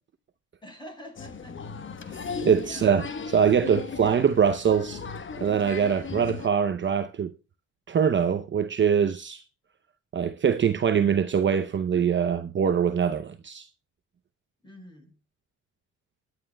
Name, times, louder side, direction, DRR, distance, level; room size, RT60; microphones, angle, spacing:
voice 1, 0.6-1.6 2.1-3.0 14.6-15.1, equal, 15° left, 5.3 m, -47 dB
Applause, 1.2-6.5, left 5 dB, 40° left, 1.2 m, -37 dB
voice 2, 2.1-5.0 5.4-7.3 7.9-9.4 10.1-13.7, right 7 dB, 40° right, 0.7 m, -23 dB
20.0 x 9.7 x 2.3 m
cardioid pair, 90°, 30 cm